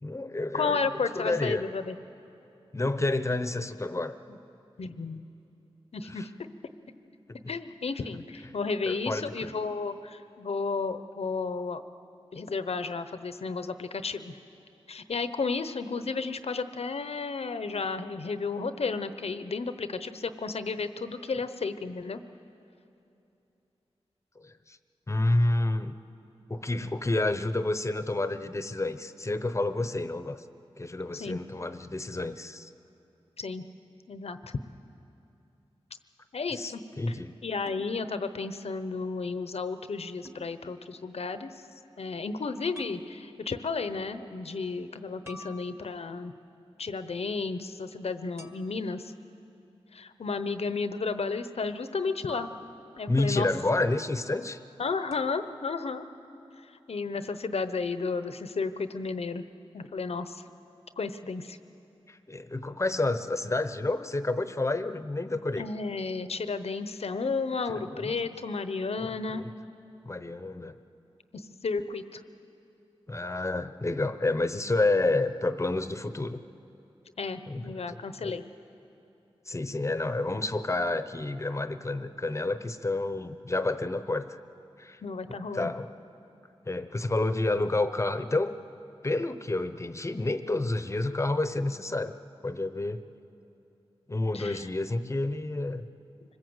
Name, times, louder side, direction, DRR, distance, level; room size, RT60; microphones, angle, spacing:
voice 1, 0.0-0.8 1.1-1.6 2.7-4.1 6.1-6.3 7.3-7.4 8.9-9.5 24.4-24.8 25.1-25.9 26.5-30.4 30.8-32.7 36.5-37.3 53.1-54.6 62.1-65.7 67.7-68.1 69.0-69.5 70.0-70.8 73.1-76.4 77.5-78.3 79.5-84.4 84.8-85.0 85.5-85.9 86.7-88.5 89.0-92.1 92.4-93.0 94.1-95.9, left 2 dB, 30° left, 11 dB, 0.9 m, -29 dB
voice 2, 0.5-2.0 4.8-5.2 5.9-6.3 7.5-11.8 12.3-14.3 14.9-22.2 31.2-31.4 33.4-33.6 34.1-34.4 36.3-36.8 37.1-37.2 37.4-41.5 42.0-46.3 46.8-49.1 49.9-52.5 53.0-53.5 54.8-56.0 56.9-59.4 59.7-60.4 61.0-61.6 65.6-69.5 71.6-72.2 77.2-78.4 85.0-85.7 94.3-94.6, left 4 dB, 80° left, 10 dB, 0.9 m, -33 dB
sound 1, 37.7-37.9 40.2-40.5 42.7-43.0 45.2-46.2 48.4-49.0 52.3-53.2 55.1-55.5, left 1 dB, 25° right, 2.0 m, -48 dB
25.5 x 21.0 x 8.0 m, 2.8 s
wide cardioid pair, 85°, 10 cm